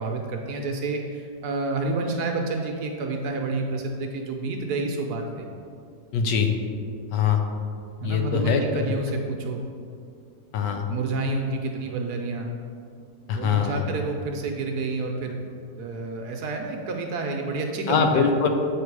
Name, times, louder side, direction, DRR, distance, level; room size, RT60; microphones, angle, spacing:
voice 1, 0.0-5.5 8.0-9.6 10.9-12.5 13.3-15.4 15.8-18.3, right 3 dB, 70° right, 2 dB, 1.1 m, -29 dB
voice 2, 6.1-6.5 7.1-7.4 8.0-8.9 10.5-10.8 13.3-13.8 17.9-18.5, left 6 dB, 85° left, 5 dB, 1.3 m, -22 dB
8.2 x 3.2 x 4.6 m, 2.3 s
omnidirectional pair, 1.9 m